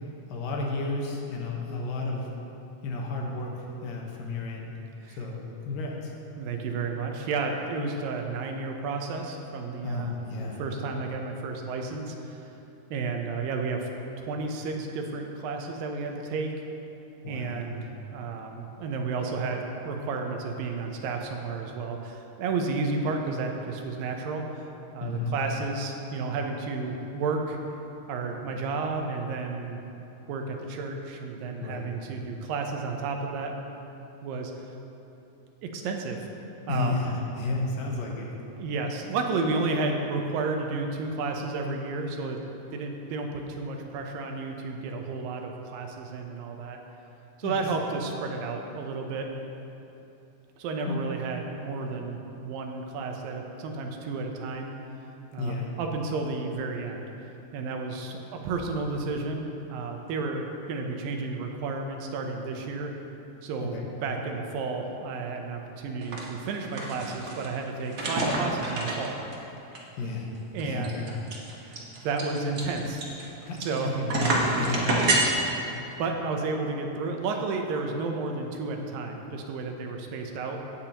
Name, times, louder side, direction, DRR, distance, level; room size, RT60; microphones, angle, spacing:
voice 1, 0.3-2.3 2.8-4.7 5.2-6.1 9.8-10.6 17.2-17.7 25.0-25.3 31.6-31.8 36.7-38.3 47.4-47.6 50.9-51.0 55.4-55.7 63.6-63.9 70.0-70.3 70.6-71.0 73.5-75.0 75.3-75.5, left 3 dB, 75° left, -1 dB, 2.8 m, -32 dB
voice 2, 6.4-12.5 12.9-13.9 14.2-16.5 17.3-17.8 18.1-24.4 24.9-27.7 28.1-29.8 30.3-33.5 34.2-34.5 35.6-36.2 36.7-37.1 38.6-42.4 42.7-46.8 47.4-49.3 50.6-54.7 55.3-57.1 57.5-60.4 60.7-62.9 63.4-63.7 64.0-69.2 70.5-71.0 71.6-73.0 73.6-73.9 75.5-80.6, right 4 dB, 85° right, 3 dB, 2.6 m, -32 dB
sound 1, 66.0-66.2 66.5-67.5 67.9-69.4 69.8-69.9 70.1-70.2 70.6-73.8 74.1-75.2, right 2 dB, 70° right, 0.9 m, -27 dB
17.5 x 8.5 x 3.0 m, 2.9 s
omnidirectional pair, 3.9 m